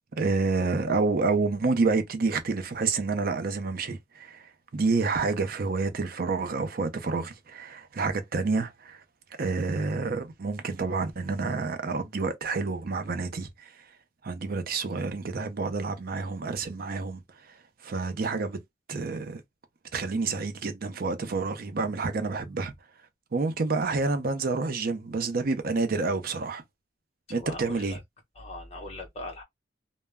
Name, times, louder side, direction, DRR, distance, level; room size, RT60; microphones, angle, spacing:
voice 1, 0.1-9.0 9.4-13.8 14.2-17.6 17.8-18.6 18.9-19.4 19.9-22.7 23.3-26.6 27.3-28.0, right 4 dB, 50° right, 0.5 m, -29 dB
voice 2, 27.4-28.0 28.4-29.4, left 2 dB, 35° left, 0.9 m, -40 dB
2.1 x 2.1 x 3.4 m
head